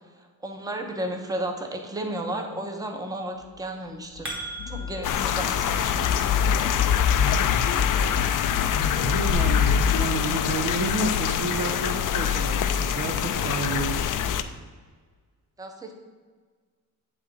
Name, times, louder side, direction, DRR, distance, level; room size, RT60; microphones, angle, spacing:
voice 1, 0.4-4.3 4.7-6.3 15.6-15.9, right 1 dB, 10° right, 3 dB, 0.6 m, -33 dB
sound 1, 3.8-5.3, right 2 dB, 35° right, 1.5 m, -37 dB
sound 2, 4.3-10.0, left 7 dB, 85° left, 0.8 m, -26 dB
sound 3, 5.0-14.4, left 9 dB, 60° left, 0.4 m, -25 dB
voice 2, 8.9-14.3, right 3 dB, 80° right, 5 dB, 1.0 m, -31 dB
8.4 x 3.7 x 5.1 m, 1.5 s
wide cardioid pair, 160°, 36 cm